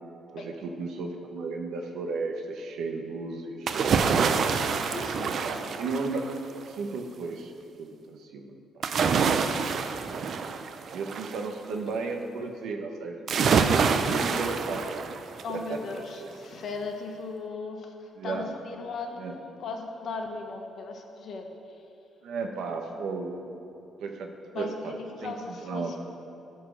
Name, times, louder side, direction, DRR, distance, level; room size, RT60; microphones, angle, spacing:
voice 1, 0.3-4.5 5.4-6.3 6.7-7.5 7.8-8.8 10.9-14.8 15.5-15.8 16.2-16.3 18.2-18.5 19.2-19.3 22.2-23.5 24.0-24.3 24.5-24.9 25.2-25.3 25.6-26.0, right 4 dB, 80° right, 3 dB, 1.1 m, -34 dB
sound 1, 3.7-6.5 8.8-11.4 13.3-15.6 16.0-16.1, right 5 dB, 60° right, 0.5 m, -26 dB
voice 2, 4.7-5.5 11.9-12.0 15.4-21.8 24.5-26.0, left 4 dB, 60° left, 3 dB, 1.2 m, -38 dB
13.5 x 4.6 x 6.2 m, 2.8 s
cardioid pair, 90°, 0 cm